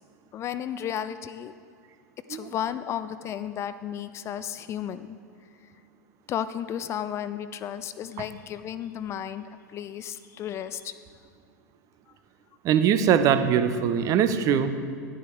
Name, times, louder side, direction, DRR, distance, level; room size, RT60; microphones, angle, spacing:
voice 1, 0.3-1.5 2.3-5.2 6.3-10.9, left 9 dB, 30° left, 13 dB, 0.4 m, -33 dB
voice 2, 12.6-14.7, right 8 dB, 35° right, 10 dB, 0.7 m, -21 dB
11.0 x 10.5 x 4.5 m, 2.1 s
figure-of-eight pair, 85°, 10 cm